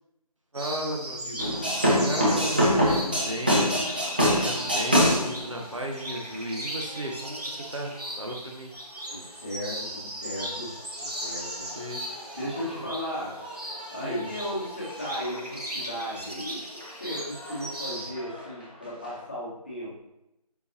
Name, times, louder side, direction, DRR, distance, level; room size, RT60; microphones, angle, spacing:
voice 1, 0.5-3.7 4.1-8.7 11.7-12.2 12.7-12.9 14.0-14.3, right 1 dB, 50° right, 0 dB, 0.9 m, -35 dB
sound 1, 0.6-18.1, equal, 75° right, 1.9 m, -38 dB
sound 2, 1.4-8.2 9.0-9.5 9.8-10.0 10.3-16.4 16.7-19.2, equal, 15° right, 0.8 m, -28 dB
voice 2, 9.1-11.7 12.3-13.4 13.9-19.9, equal, 15° left, -6 dB, 1.1 m, -36 dB
7.1 x 5.9 x 2.7 m, 0.87 s
figure-of-eight pair, 165°, 20 cm